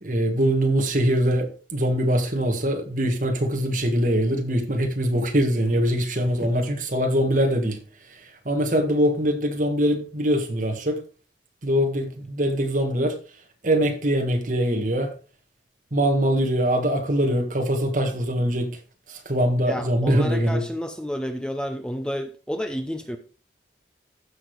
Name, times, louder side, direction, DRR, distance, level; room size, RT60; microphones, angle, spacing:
voice 1, 0.0-7.8 8.4-11.0 11.6-13.1 13.6-15.1 15.9-18.7 19.1-20.6, equal, 45° right, 1.7 m, -23 dB
voice 2, 19.7-23.2, equal, 5° left, 0.6 m, -30 dB
15.0 x 6.2 x 3.3 m
head